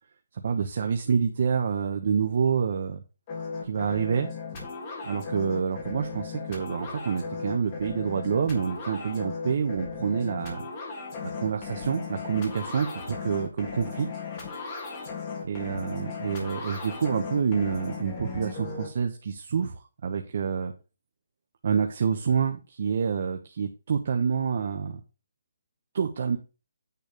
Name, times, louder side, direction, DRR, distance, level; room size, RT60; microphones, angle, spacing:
voice 1, 0.3-3.0 3.6-4.3 5.0-10.6 11.2-14.1 15.5-20.7 21.6-25.0 25.9-26.4, right 6 dB, 45° right, 5 dB, 0.9 m, -27 dB
sound 1, 3.3-18.9, left 5 dB, 25° left, 1.8 m, -37 dB
9.3 x 3.4 x 6.6 m, 0.32 s
hypercardioid pair, 175°, 0 cm